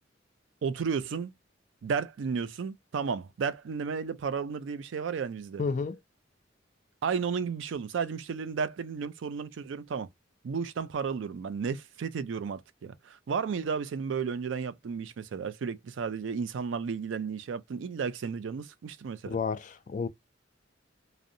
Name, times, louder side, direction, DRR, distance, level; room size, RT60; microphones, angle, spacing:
voice 1, 0.6-1.3 1.8-5.6 7.0-10.1 10.4-19.4, right 6 dB, 85° right, 0.4 m, -33 dB
voice 2, 5.6-6.0 19.2-20.1, left 5 dB, 45° left, 0.4 m, -31 dB
2.5 x 2.0 x 2.6 m
head